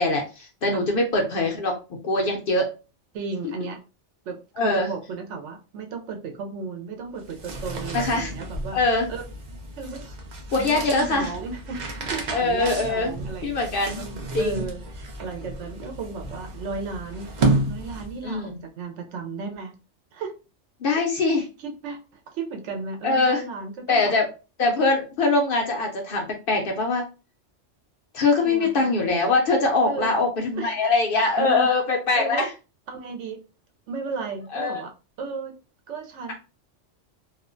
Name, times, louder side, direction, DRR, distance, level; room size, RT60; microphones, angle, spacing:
voice 1, 0.0-1.7 2.0-2.7 4.6-4.9 7.9-8.3 8.7-9.1 10.5-11.3 12.3-13.2 13.4-14.0 14.3-14.6 18.2-18.6 20.8-21.5 23.0-23.4 23.9-24.3 24.6-27.0 28.1-32.5 34.5-34.8, left 3 dB, 60° left, 1 dB, 0.6 m, -22 dB
voice 2, 3.1-3.8 4.2-8.8 9.1-9.2 9.8-10.1 10.5-17.3 17.7-19.7 20.1-20.3 21.4-24.1 28.3-29.1 29.9-30.2 30.6-30.8 31.4-31.7 32.2-32.5 32.9-33.4 33.9-34.9 35.2-35.5 35.9-36.3, right 4 dB, 75° right, 4 dB, 0.9 m, -34 dB
sound 1, 7.1-18.3, right 2 dB, 55° right, 0.5 m, -31 dB
2.4 x 2.1 x 2.4 m, 0.32 s
omnidirectional pair, 1.2 m